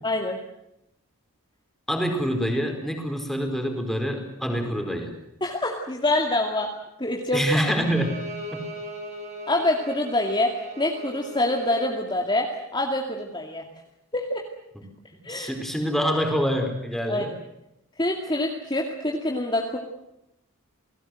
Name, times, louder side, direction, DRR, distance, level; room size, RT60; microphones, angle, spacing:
voice 1, 0.0-0.4 5.4-6.7 7.0-7.7 9.5-10.5 10.8-12.5 12.7-13.6 14.1-14.4 15.2-15.5 17.1-17.2 18.0-19.8, left 1 dB, 20° left, 1 dB, 2.4 m, -25 dB
voice 2, 1.9-5.1 7.3-8.2 8.5-8.6 14.7-14.8 15.2-17.4, equal, ahead, 3 dB, 4.6 m, -26 dB
Bowed string instrument, 7.7-12.0, right 1 dB, 30° right, 5.6 m, -39 dB
29.0 x 19.5 x 7.8 m, 0.86 s
head